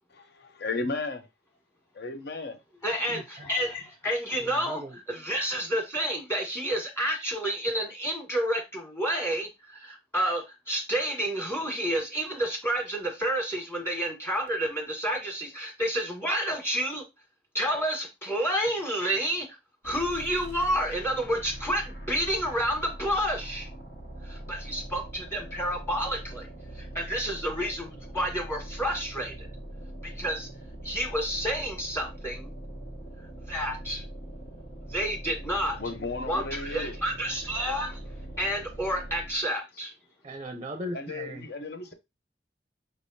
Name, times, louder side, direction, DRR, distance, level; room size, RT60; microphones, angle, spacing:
voice 1, 0.1-1.3 1.9-2.6 35.8-37.0 40.9-41.9, left 3 dB, 65° left, 0.7 m, -34 dB
voice 2, 2.8-17.0 17.5-19.6 19.8-23.7 24.2-26.5 26.7-29.5 30.0-30.5 30.8-32.5 33.5-34.0 34.9-35.8 36.3-38.0 38.4-39.9, equal, 15° left, 1.5 m, -30 dB
sound 1, 19.8-39.5, right 1 dB, 80° left, 1.9 m, -42 dB
voice 3, 40.2-41.4, equal, 30° right, 0.5 m, -37 dB
5.2 x 3.3 x 2.7 m
head